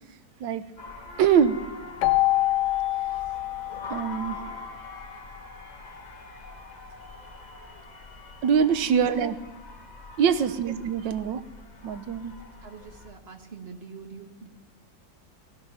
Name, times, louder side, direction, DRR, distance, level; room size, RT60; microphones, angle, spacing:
sound 1, 0.8-13.1, left 3 dB, 25° left, 1.3 m, -44 dB
voice 1, 1.2-1.6 3.9-4.4 8.4-9.4 10.2-11.4 11.8-12.3, right 7 dB, 80° right, 11 dB, 1.5 m, -23 dB
Keyboard (musical), 2.0-4.6, left 17 dB, 75° left, 1.2 m, -26 dB
voice 2, 8.8-9.2 10.3-10.4 12.6-14.5, right 4 dB, 35° right, 5 dB, 1.4 m, -43 dB
19.0 x 11.5 x 5.8 m, 1.2 s
omnidirectional pair, 2.0 m